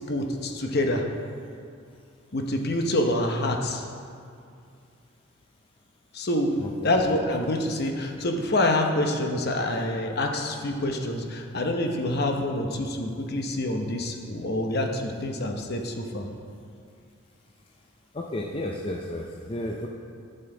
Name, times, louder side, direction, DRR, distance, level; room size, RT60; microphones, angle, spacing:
voice 1, 0.1-1.1 2.3-3.8 6.1-6.6 6.8-16.2, left 1 dB, 50° left, 3 dB, 0.9 m, -26 dB
voice 2, 6.6-6.9 18.1-19.9, left 1 dB, 25° left, 0 dB, 0.5 m, -32 dB
12.5 x 6.8 x 3.9 m, 2.4 s
head